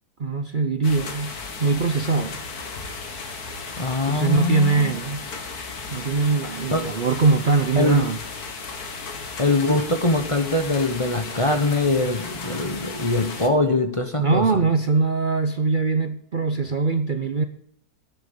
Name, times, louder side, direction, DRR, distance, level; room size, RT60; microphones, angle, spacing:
voice 1, 0.2-2.4 4.1-5.2 5.9-8.2 14.2-17.4, right 4 dB, 45° right, 0.8 m, -22 dB
sound 1, 0.8-13.5, left 4 dB, 90° left, 2.1 m, -35 dB
voice 2, 3.8-4.9 6.7-6.9 7.7-8.1 9.4-14.6, left 2 dB, 25° left, 1.0 m, -23 dB
13.5 x 9.6 x 5.3 m
omnidirectional pair, 1.6 m